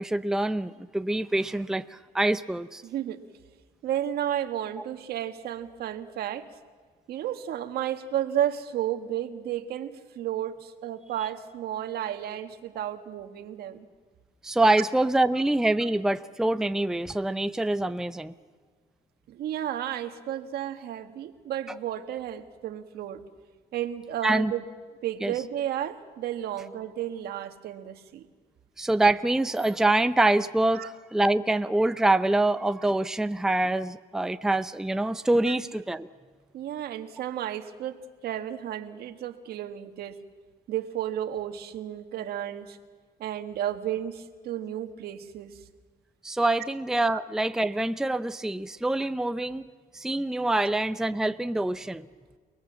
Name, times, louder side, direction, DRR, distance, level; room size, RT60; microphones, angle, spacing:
voice 1, 0.0-2.8 14.4-18.3 24.2-24.5 25.2-25.3 28.8-36.1 46.2-49.7 49.9-52.1, right 2 dB, 5° right, 11 dB, 0.7 m, -25 dB
voice 2, 2.8-3.2 3.8-6.5 7.1-13.9 19.3-23.2 23.7-24.6 25.0-28.3 30.7-30.9 35.5-35.6 36.5-40.2 40.7-42.8 43.2-45.6, right 11 dB, 70° right, 7 dB, 1.8 m, -32 dB
30.0 x 20.5 x 7.5 m, 1.5 s
cardioid pair, 110°, 17 cm